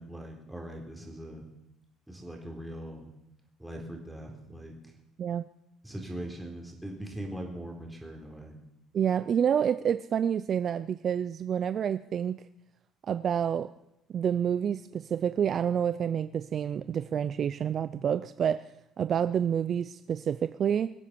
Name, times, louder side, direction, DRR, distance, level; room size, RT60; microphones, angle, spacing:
voice 1, 0.0-1.5 2.1-3.1 3.6-4.7 5.8-8.5, right 1 dB, 5° right, 1 dB, 3.9 m, -41 dB
voice 2, 8.9-12.4 13.0-13.7 14.1-18.7 19.0-20.9, right 8 dB, 45° right, 14 dB, 0.5 m, -28 dB
23.0 x 8.3 x 6.9 m, 0.87 s
cardioid pair, 120°, 0 cm